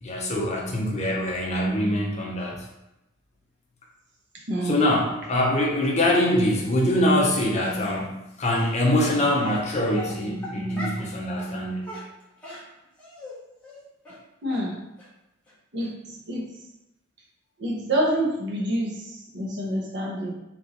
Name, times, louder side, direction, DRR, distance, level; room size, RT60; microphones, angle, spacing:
voice 1, 0.0-2.6 4.6-11.9, left 1 dB, 35° left, -2 dB, 0.8 m, -24 dB
voice 2, 4.5-4.9 14.4-14.8 15.7-16.5 17.6-20.3, right 1 dB, 60° right, -2 dB, 1.0 m, -27 dB
Dog, 7.6-7.9 8.5-8.6 9.4-9.6 9.9-11.1 11.4-11.5 11.8-13.3 13.6-13.8 14.0-14.2 14.5-14.6 15.0-15.1 15.5-15.6 15.8-15.9, left 1 dB, 5° left, 1.1 m, -39 dB
3.4 x 3.0 x 3.9 m, 0.90 s
head